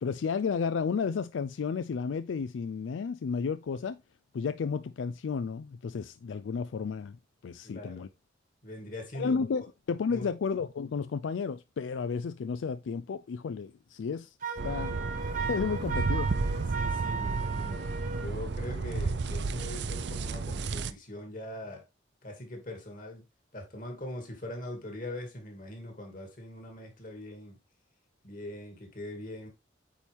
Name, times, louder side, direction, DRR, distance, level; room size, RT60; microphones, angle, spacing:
voice 1, 0.0-4.0 4.3-7.2 7.4-8.1 9.1-15.0 15.4-16.3, left 5 dB, 80° left, 0.4 m, -32 dB
voice 2, 7.6-8.1 8.6-9.4 10.1-10.3 16.7-21.8 22.2-23.2 23.5-27.6 28.2-29.5, left 1 dB, 45° left, 2.4 m, -42 dB
Wind instrument woodwind instrument, 14.4-18.3, right 5 dB, 45° right, 1.0 m, -36 dB
sound 1, 14.6-20.9, right 3 dB, 65° right, 0.5 m, -32 dB
8.6 x 4.5 x 3.5 m
head